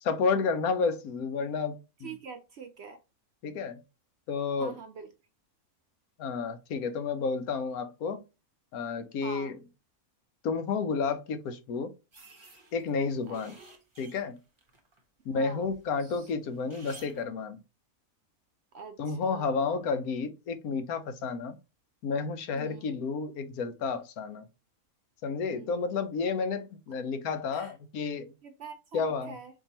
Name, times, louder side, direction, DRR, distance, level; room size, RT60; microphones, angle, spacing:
voice 1, 0.0-2.2 3.4-3.8 4.3-4.8 6.2-8.2 8.7-9.6 10.4-11.9 12.7-13.5 14.0-14.4 15.2-17.6 19.0-21.6 22.0-24.5 25.2-28.3 28.9-29.4, left 5 dB, 80° left, 1.2 m, -31 dB
voice 2, 2.0-3.0 4.6-5.1 9.2-9.5 13.3-13.4 15.3-15.7 18.7-19.0 19.2-19.5 22.6-22.8 25.5-25.8 27.5-27.7 28.6-29.5, right 5 dB, 65° right, 0.7 m, -44 dB
sound 1, 12.1-15.0 15.4-17.2, right 3 dB, 25° right, 0.7 m, -54 dB
4.5 x 2.9 x 2.8 m
omnidirectional pair, 1.5 m